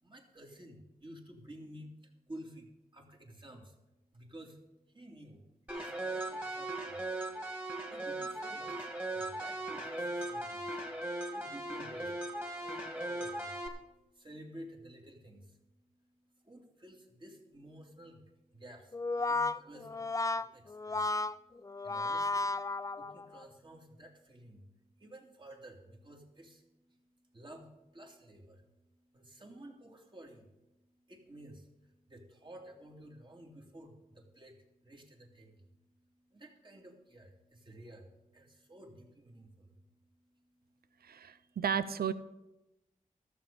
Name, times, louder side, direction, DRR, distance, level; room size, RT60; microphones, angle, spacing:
voice 1, 0.0-3.8 4.1-4.6 4.9-5.4 5.7-7.1 7.8-41.6, right 1 dB, 30° right, 1 dB, 2.7 m, -53 dB
sound 1, 5.7-13.7, right 2 dB, 10° right, 2.4 m, -38 dB
Brass instrument, 18.9-23.4, left 3 dB, 20° left, 0.4 m, -34 dB
voice 2, 41.0-42.1, right 7 dB, 80° right, 14 dB, 0.6 m, -33 dB
13.0 x 7.1 x 6.8 m, 0.97 s
cardioid pair, 50°, 15 cm